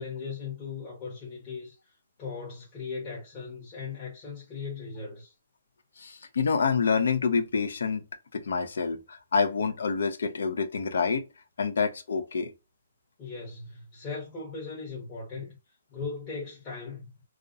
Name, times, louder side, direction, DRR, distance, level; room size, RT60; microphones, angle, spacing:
voice 1, 0.0-1.9 2.2-5.3 13.2-15.6 15.9-17.1, left 5 dB, 25° left, 0.9 m, -38 dB
voice 2, 6.0-8.0 8.3-11.2 11.6-12.5, left 5 dB, 75° left, 0.4 m, -27 dB
2.4 x 2.0 x 2.6 m
hypercardioid pair, 155°, 0 cm